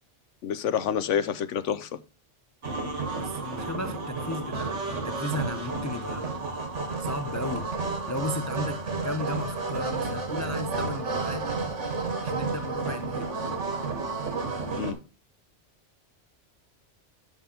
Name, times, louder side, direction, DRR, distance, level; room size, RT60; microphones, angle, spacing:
voice 1, 0.4-2.0 14.8-15.0, left 8 dB, 80° left, 1.0 m, -28 dB
sound 1, 2.6-14.9, right 3 dB, 80° right, 1.8 m, -31 dB
voice 2, 3.2-6.3 7.0-7.7 8.1-11.5 12.2-13.3, left 2 dB, 30° left, 0.3 m, -35 dB
7.2 x 7.2 x 4.3 m
omnidirectional pair, 1.2 m